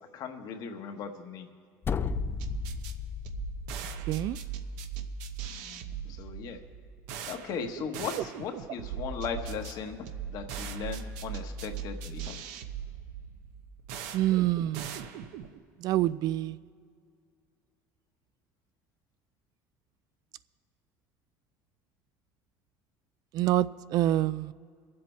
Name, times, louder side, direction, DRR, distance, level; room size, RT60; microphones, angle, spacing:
voice 1, 0.1-1.5 5.6-6.6 7.3-12.4, left 6 dB, 60° left, 5 dB, 1.2 m, -38 dB
sound 1, 1.8-3.9, left 8 dB, 30° left, 0.4 m, -34 dB
sound 2, 2.0-15.6, right 7 dB, 80° right, 0.8 m, -39 dB
voice 2, 14.1-15.0 15.8-16.6 23.3-24.5, right 14 dB, 60° right, 17 dB, 0.3 m, -26 dB
22.5 x 7.7 x 4.5 m, 2.2 s
supercardioid pair, 105°, 8 cm